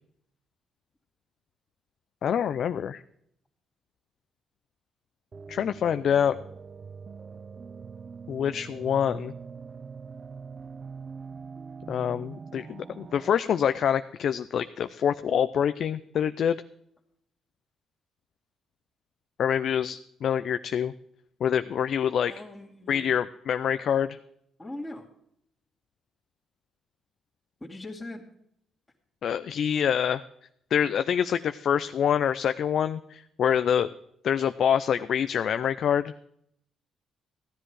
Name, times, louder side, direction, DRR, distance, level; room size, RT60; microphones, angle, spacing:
voice 1, 2.2-3.0 5.5-6.4 8.3-9.3 11.9-16.6 19.4-20.9 21.4-22.3 22.9-24.2 29.2-30.2 30.7-33.9 34.2-36.1, left 8 dB, 65° left, 11 dB, 0.5 m, -26 dB
sound 1, 5.3-13.3, right 5 dB, 40° right, 0.5 m, -43 dB
voice 2, 22.2-23.1 24.6-25.1 27.6-28.2, left 1 dB, 10° left, -5 dB, 2.3 m, -40 dB
15.0 x 10.0 x 4.8 m, 0.73 s
cardioid pair, 90°, 0 cm